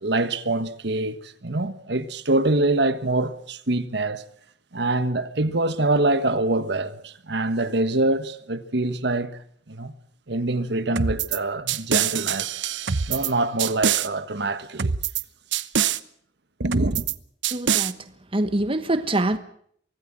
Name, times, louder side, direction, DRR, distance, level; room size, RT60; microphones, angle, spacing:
voice 1, 0.0-4.2 4.7-9.3 9.7-9.9 10.3-12.5 13.1-14.9 16.6-17.1, right 2 dB, 65° right, 1.4 m, -25 dB
sound 1, 11.0-11.4 11.7-13.3 13.6-14.1 14.8-15.2 15.5-16.0 16.7-17.1 17.4-17.9, right 7 dB, 90° right, 1.0 m, -24 dB
voice 2, 17.5-18.0 18.3-19.4, right 1 dB, 30° right, 1.3 m, -24 dB
24.5 x 18.5 x 7.5 m
head